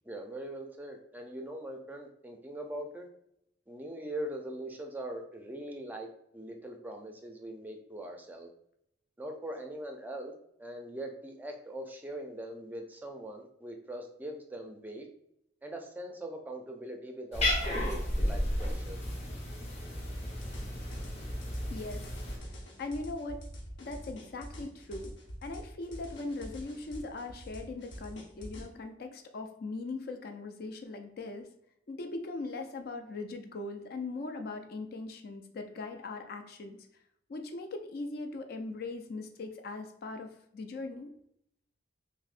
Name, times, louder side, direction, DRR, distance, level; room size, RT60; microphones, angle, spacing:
voice 1, 0.1-3.1 3.7-6.1 6.3-8.5 9.2-10.3 10.6-15.1 15.6-19.0, right 1 dB, 10° right, 3 dB, 0.4 m, -41 dB
Cat, 17.3-22.4, left 1 dB, 35° left, 1.0 m, -33 dB
sound 1, 20.4-28.7, equal, 85° left, 0.8 m, -45 dB
voice 2, 21.7-22.1 22.8-23.4 23.8-25.1 25.4-31.5 31.9-36.8 37.3-41.1, left 3 dB, 55° left, 5 dB, 0.4 m, -40 dB
6.0 x 2.0 x 2.5 m, 0.74 s
head